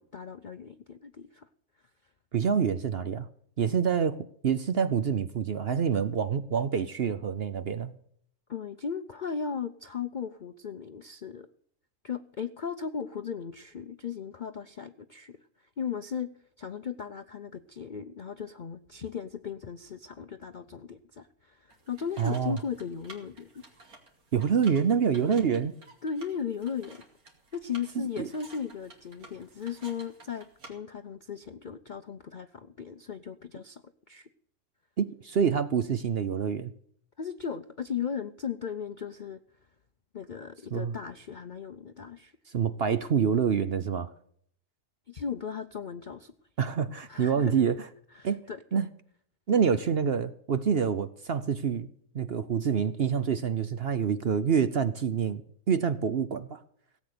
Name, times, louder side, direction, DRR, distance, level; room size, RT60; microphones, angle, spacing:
voice 1, 0.0-1.5 8.5-11.5 12.0-15.4 15.8-16.3 16.6-23.5 26.0-27.0 27.5-33.8 34.1-34.3 37.2-39.4 40.1-42.3 45.1-46.3 47.1-47.6 48.1-48.6, left 7 dB, 55° left, 11 dB, 0.5 m, -37 dB
voice 2, 2.3-3.3 3.6-7.9 22.2-22.6 24.3-25.8 28.0-28.3 35.0-36.7 40.7-40.9 42.5-44.1 46.6-47.8 48.2-48.4 48.7-48.9 49.5-51.9 52.1-55.4 55.7-56.6, right 7 dB, 50° right, 12 dB, 0.8 m, -27 dB
sound 1, 21.7-30.7, right 2 dB, 70° right, 3.1 m, -53 dB
17.5 x 8.4 x 6.7 m, 0.65 s
omnidirectional pair, 1.6 m